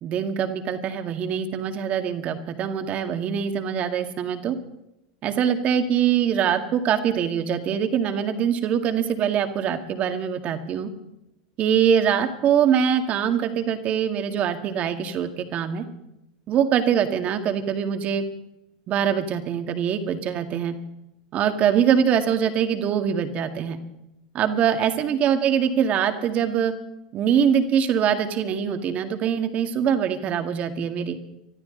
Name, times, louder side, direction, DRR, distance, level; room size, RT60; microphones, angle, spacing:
voice 1, 0.0-4.6 5.2-10.9 11.6-15.8 16.5-18.2 18.9-20.7 21.3-23.8 24.3-26.7 27.1-31.2, right 8 dB, 40° right, 7 dB, 1.9 m, -23 dB
24.5 x 13.0 x 3.9 m, 0.87 s
hypercardioid pair, 110°, 4 cm